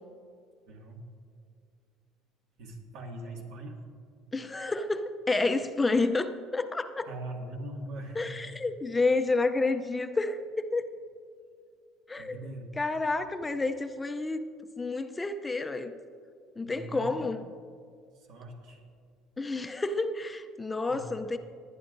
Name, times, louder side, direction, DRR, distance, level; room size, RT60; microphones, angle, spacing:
voice 1, 0.6-1.0 2.6-3.8 7.1-8.6 12.2-12.7 16.6-17.2 18.1-18.8 20.9-21.0, right 1 dB, 75° right, 1 dB, 2.0 m, -41 dB
voice 2, 4.3-7.1 8.2-10.8 12.1-12.4 12.8-14.5 14.8-16.0 16.6-17.4 19.4-21.4, left 3 dB, 15° left, 9 dB, 0.5 m, -29 dB
20.5 x 10.0 x 2.6 m, 2.3 s
cardioid pair, 115°, 0 cm